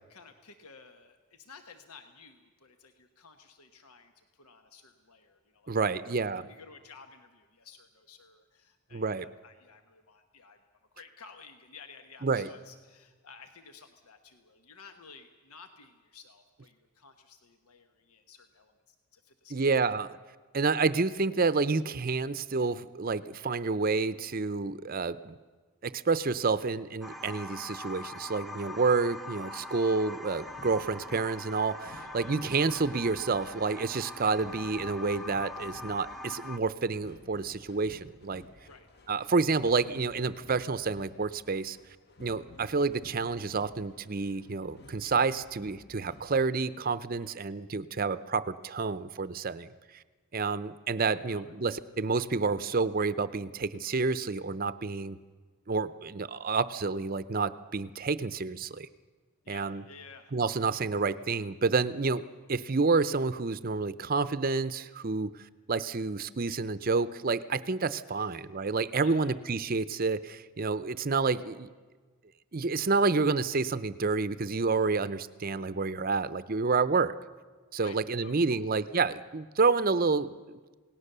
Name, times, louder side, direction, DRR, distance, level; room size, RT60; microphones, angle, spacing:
voice 1, 0.1-10.6 10.9-19.6 31.9-32.4 38.7-39.3 47.2-47.4 51.3-51.8 59.4-60.3 68.2-68.4 69.0-69.4 77.8-78.8, left 5 dB, 85° left, 7 dB, 1.2 m, -54 dB
voice 2, 5.7-6.4 8.9-9.3 12.2-12.5 19.5-20.1 20.5-25.4 25.8-38.4 39.1-41.8 42.2-49.7 49.9-50.0 50.3-55.2 55.7-58.9 59.5-59.8 60.3-62.2 62.5-65.4 65.7-71.7 72.5-77.1 77.7-80.7, right 4 dB, 40° right, 14 dB, 0.6 m, -29 dB
sound 1, 27.0-36.6, left 1 dB, ahead, 0.7 m, -43 dB
sound 2, 30.4-46.5, left 2 dB, 45° left, 1.2 m, -55 dB
28.0 x 18.0 x 6.8 m, 1.4 s
head